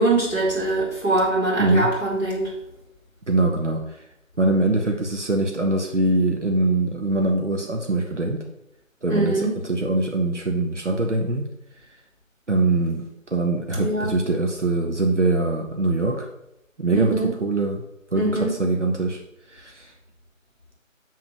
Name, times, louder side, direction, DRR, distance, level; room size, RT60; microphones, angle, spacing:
voice 1, 0.0-2.5 9.1-9.6 13.8-14.2 16.9-17.3 18.1-18.6, right 2 dB, 5° right, -20 dB, 3.0 m, -23 dB
voice 2, 1.6-1.9 3.3-4.0 4.4-8.4 9.0-11.5 12.5-16.3 16.8-17.8 18.1-19.2 19.5-19.9, right 2 dB, 60° right, 1 dB, 1.1 m, -23 dB
7.4 x 3.9 x 6.3 m, 0.85 s
figure-of-eight pair, 170°, 40 cm